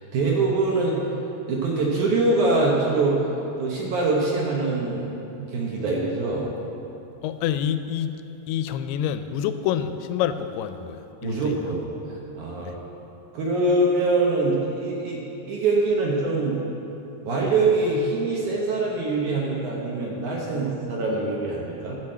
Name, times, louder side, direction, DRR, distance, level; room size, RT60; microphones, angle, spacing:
voice 1, 0.1-1.0 1.5-3.2 3.6-6.5 11.2-12.8 13.3-15.2 15.5-16.6 17.2-22.0, right 3 dB, 65° right, -3 dB, 2.1 m, -24 dB
voice 2, 7.2-8.1 8.5-11.6 12.6-12.8, left 9 dB, 85° left, 10 dB, 2.5 m, -27 dB
13.0 x 6.1 x 7.7 m, 2.9 s
omnidirectional pair, 4.6 m